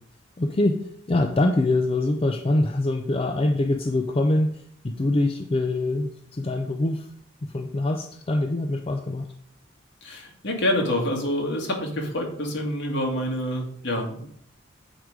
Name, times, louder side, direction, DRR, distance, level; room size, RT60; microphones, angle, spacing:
voice 1, 0.4-7.1 7.5-9.3, left 2 dB, 30° left, 5 dB, 0.5 m, -24 dB
voice 2, 10.0-14.3, left 1 dB, 65° left, 0 dB, 1.9 m, -27 dB
8.0 x 4.9 x 4.7 m, 0.64 s
head